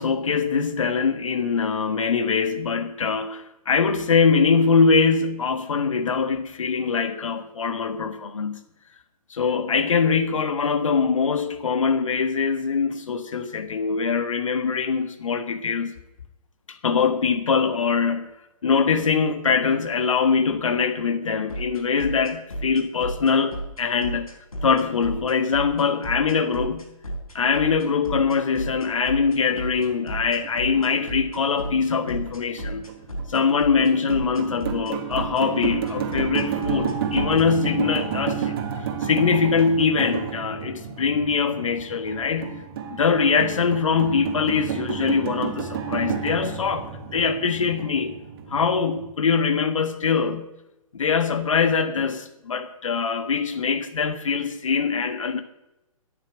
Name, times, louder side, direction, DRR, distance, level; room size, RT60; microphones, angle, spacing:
voice 1, 0.0-8.6 9.3-15.9 16.7-18.3 18.6-24.3 24.6-26.9 27.3-32.9 33.3-42.6 42.9-48.2 48.5-50.5 50.9-55.4, left 5 dB, 60° left, 1.5 m, -23 dB
sound 1, 21.5-37.4, right 1 dB, 75° left, 4.2 m, -33 dB
sound 2, 29.3-49.1, right 7 dB, 40° right, 2.0 m, -32 dB
13.0 x 10.0 x 7.1 m
figure-of-eight pair, 125°, 18 cm